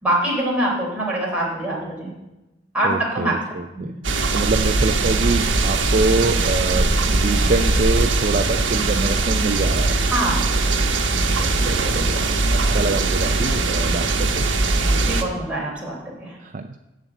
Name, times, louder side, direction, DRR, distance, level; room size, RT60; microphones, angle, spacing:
voice 1, 0.0-2.1 2.7-3.3 3.7-3.9 10.0-10.5 14.8-16.3, right 1 dB, 5° right, -5 dB, 3.7 m, -24 dB
voice 2, 2.8-3.9 4.3-9.9 11.4-14.5 16.4-16.8, right 3 dB, 45° right, 6 dB, 0.4 m, -25 dB
sound 1, 4.0-15.2, right 3 dB, 85° right, 1.1 m, -20 dB
7.5 x 7.3 x 8.1 m, 1.0 s
head